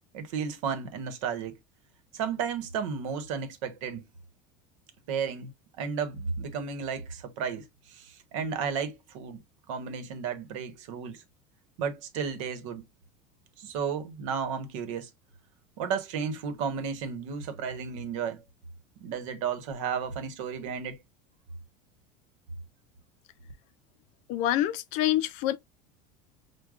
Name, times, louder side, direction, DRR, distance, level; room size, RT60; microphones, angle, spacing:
voice 1, 0.1-1.6 2.1-4.0 5.1-5.5 5.8-7.7 7.9-8.1 8.3-9.4 9.7-11.2 11.8-12.8 13.6-15.1 15.8-18.4 19.0-21.0, right 6 dB, 75° right, 1.0 m, -33 dB
voice 2, 24.3-25.6, left 13 dB, 50° left, 0.4 m, -26 dB
6.3 x 2.2 x 2.4 m
cardioid pair, 160°, 16 cm